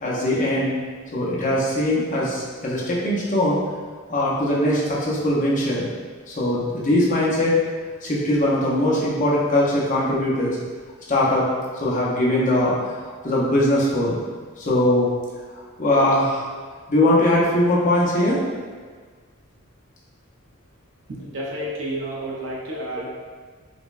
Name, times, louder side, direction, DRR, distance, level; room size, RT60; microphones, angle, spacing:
voice 1, 0.0-0.7 1.1-3.6 4.1-5.9 6.3-7.6 8.0-10.6 11.1-11.5 11.8-12.7 13.0-14.2 14.6-15.1 15.5-16.4 16.9-18.4, left 1 dB, 35° left, -5 dB, 0.7 m, -21 dB
voice 2, 21.2-23.1, right 1 dB, 60° right, -5 dB, 0.6 m, -30 dB
5.0 x 2.2 x 2.4 m, 1.5 s
head